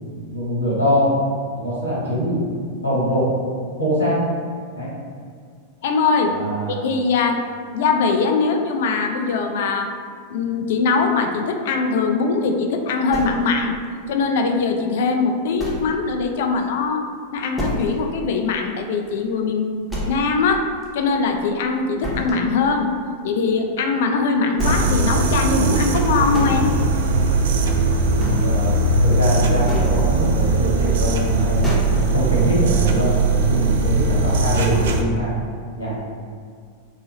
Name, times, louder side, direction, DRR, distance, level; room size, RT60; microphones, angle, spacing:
voice 1, 0.3-1.1 1.5-2.5 2.8-3.2 3.8-4.2 4.7-4.9 6.3-6.8 28.4-28.7 29.0-31.7 32.1-35.3 35.8-35.9, equal, 85° left, -8 dB, 1.3 m, -22 dB
voice 2, 5.8-6.4 6.7-7.4 7.7-9.9 10.3-13.8 14.1-17.0 17.3-20.7 20.9-22.9 23.2-26.7, left 4 dB, 55° left, 4 dB, 0.3 m, -21 dB
sound 1, 13.1-13.8 14.3-14.4 14.9-15.0 15.6-16.0 16.3-16.4 16.8-16.9 17.5-18.1 18.5-18.6 19.0-19.1 19.9-20.5 20.8-21.6 22.0-22.5 23.9-24.0 24.5-25.0 25.9-26.5 27.6-27.8 28.1-28.7 29.4-30.0 31.2-31.3 31.6-32.2, left 1 dB, 5° left, 0.8 m, -29 dB
sound 2, 24.6-35.0, right 2 dB, 60° right, 0.3 m, -19 dB
3.1 x 2.6 x 2.9 m, 2.1 s
figure-of-eight pair, 90°, 0 cm